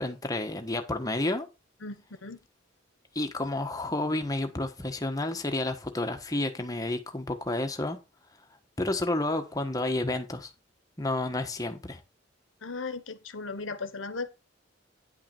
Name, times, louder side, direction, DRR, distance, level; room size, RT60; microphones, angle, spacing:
voice 1, 0.0-1.5 3.1-8.0 8.8-10.5 11.0-12.0, left 2 dB, 20° left, 1.3 m, -30 dB
voice 2, 1.8-2.4 12.6-14.3, left 3 dB, 85° left, 1.3 m, -37 dB
9.9 x 5.7 x 4.4 m
head